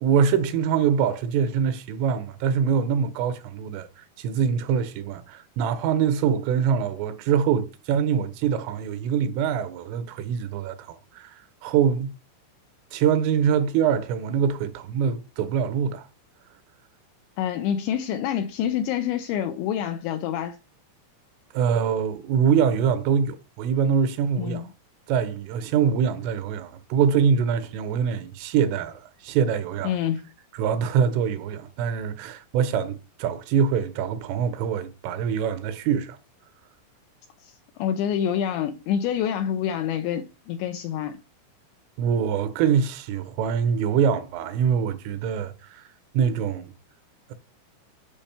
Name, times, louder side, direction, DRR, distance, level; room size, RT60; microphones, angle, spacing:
voice 1, 0.0-11.3 11.6-12.1 12.9-16.1 21.5-24.7 25.1-29.9 30.5-36.2 42.0-45.8 46.1-46.7, right 7 dB, 85° right, 3.4 m, -24 dB
voice 2, 17.4-20.6 24.4-24.7 29.8-30.2 37.4-41.2, left 9 dB, 85° left, 2.6 m, -27 dB
8.8 x 5.3 x 6.8 m
omnidirectional pair, 5.8 m